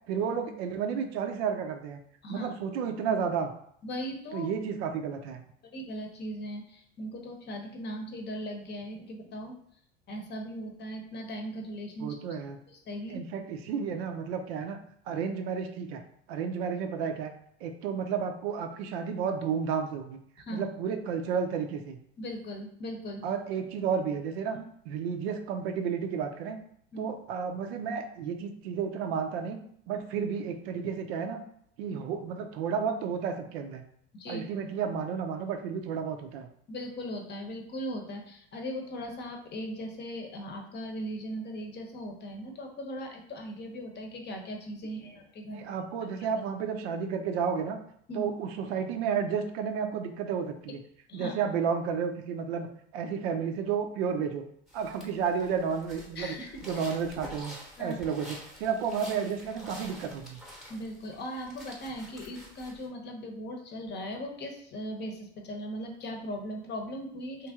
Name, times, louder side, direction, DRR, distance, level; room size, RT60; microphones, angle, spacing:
voice 1, 0.1-2.0 2.3-3.5 4.3-5.4 12.0-12.6 13.1-14.8 15.1-16.0 16.3-17.3 17.6-20.2 20.5-22.0 23.2-24.6 24.9-26.6 27.0-29.6 29.9-31.4 31.8-33.8 34.3-36.5 45.5-47.8 48.1-50.8 51.1-52.7 52.9-54.4 54.7-56.4 56.6-60.4, right 6 dB, 65° right, 6 dB, 0.6 m, -32 dB
voice 2, 3.8-4.5 5.7-9.6 10.1-12.2 12.7-13.2 20.4-20.7 22.2-23.3 24.5-24.6 26.9-27.1 34.1-34.4 36.7-45.7 48.1-48.3 51.1-51.4 56.2-56.5 57.8-58.0 60.7-67.5, equal, 30° left, 3 dB, 0.8 m, -38 dB
sound 1, 54.7-62.9, equal, ahead, 0.9 m, -48 dB
3.2 x 2.5 x 3.5 m, 0.68 s
hypercardioid pair, 85°, 34 cm